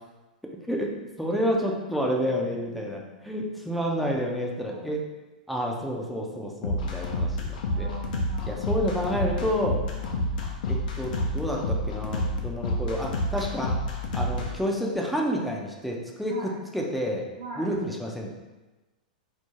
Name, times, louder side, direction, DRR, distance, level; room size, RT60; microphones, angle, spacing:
voice 1, 0.7-5.0 5.5-7.9 8.4-9.8 10.7-13.7 14.1-17.2 17.6-18.3, equal, ahead, -1 dB, 0.4 m, -29 dB
voice 2, 2.0-3.2 4.6-5.0 7.6-8.6 9.9-10.1 16.3-16.6 17.4-17.7, right 3 dB, 60° right, -5 dB, 0.7 m, -42 dB
sound 1, 6.6-14.5, left 1 dB, 65° left, 0.4 m, -28 dB
2.3 x 2.0 x 3.1 m, 1.1 s
hypercardioid pair, 105°, 5 cm